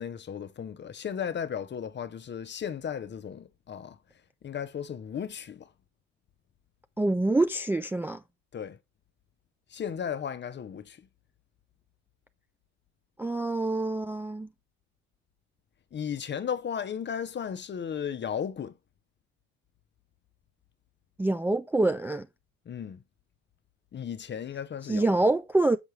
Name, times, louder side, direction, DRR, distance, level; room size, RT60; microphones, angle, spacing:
voice 1, 0.0-4.0 4.4-5.7 8.5-8.8 9.7-11.0 15.9-18.7 22.7-23.0 23.9-25.1, left 8 dB, 30° left, 0.7 m, -35 dB
voice 2, 7.0-8.2 13.2-14.5 21.2-22.3 24.9-25.8, right 2 dB, 5° right, 0.4 m, -26 dB
6.3 x 5.8 x 3.2 m
supercardioid pair, 90°, 36 cm